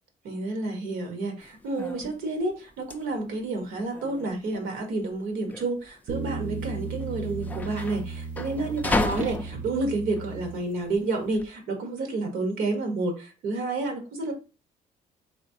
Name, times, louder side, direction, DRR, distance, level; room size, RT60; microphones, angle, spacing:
voice 1, 0.2-14.3, right 2 dB, 80° right, 5 dB, 1.3 m, -30 dB
sound 1, 1.4-11.5, left 3 dB, 10° left, 0.4 m, -35 dB
sound 2, 6.1-11.0, right 4 dB, 55° right, 0.7 m, -35 dB
4.2 x 3.4 x 2.8 m, 0.32 s
cardioid pair, 135°, 15 cm